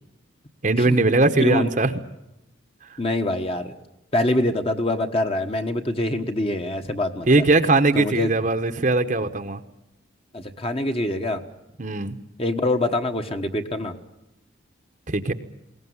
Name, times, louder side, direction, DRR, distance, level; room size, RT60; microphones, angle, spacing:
voice 1, 0.6-1.9 7.3-9.6 11.8-12.1 15.1-15.3, right 2 dB, 40° right, 8 dB, 1.0 m, -20 dB
voice 2, 3.0-3.7 4.1-7.4 7.9-8.3 10.3-11.4 12.4-14.0, left 1 dB, 30° left, 6 dB, 1.3 m, -25 dB
21.5 x 18.5 x 9.6 m, 0.91 s
head